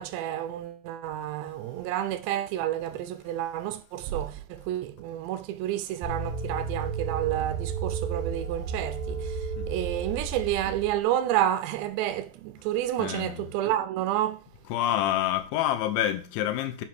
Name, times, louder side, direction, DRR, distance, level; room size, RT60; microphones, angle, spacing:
voice 1, 0.0-14.4, right 12 dB, 80° right, 2.7 m, -30 dB
sound 1, 6.0-11.0, right 5 dB, 60° right, 2.5 m, -33 dB
voice 2, 13.0-13.4 14.7-16.9, left 12 dB, 85° left, 3.3 m, -27 dB
8.6 x 4.7 x 6.0 m
omnidirectional pair, 5.3 m